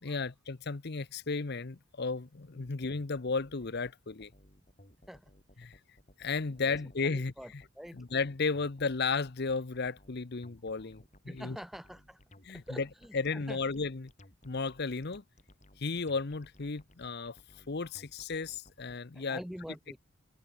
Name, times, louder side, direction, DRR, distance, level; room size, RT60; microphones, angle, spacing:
voice 1, 0.0-4.3 5.6-5.8 6.2-7.6 7.9-11.6 12.4-12.9 13.1-14.1 14.4-15.2 15.8-17.4 17.7-19.4, left 4 dB, 50° left, 0.8 m, -34 dB
sound 1, 2.6-19.0, left 1 dB, 35° left, 6.1 m, -59 dB
voice 2, 7.0-8.0 11.3-12.2 12.5-13.6 19.1-20.0, equal, ahead, 0.5 m, -46 dB
head